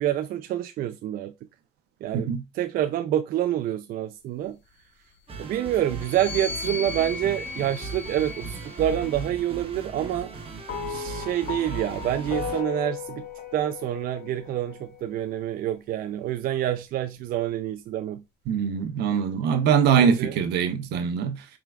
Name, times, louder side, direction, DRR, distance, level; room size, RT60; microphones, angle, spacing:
voice 1, 0.0-1.3 2.0-4.6 5.4-10.3 10.9-13.2 13.5-18.2 20.0-20.4, right 11 dB, 60° right, 0.4 m, -27 dB
sound 1, 5.3-12.6, right 4 dB, 35° right, 1.0 m, -38 dB
sound 2, 5.9-9.5 10.4-12.0, left 4 dB, 90° left, 0.8 m, -38 dB
sound 3, 10.7-15.1, left 7 dB, 60° left, 0.7 m, -36 dB
voice 2, 18.5-21.4, right 7 dB, 80° right, 0.8 m, -23 dB
4.4 x 3.7 x 2.3 m
cardioid pair, 110°, 17 cm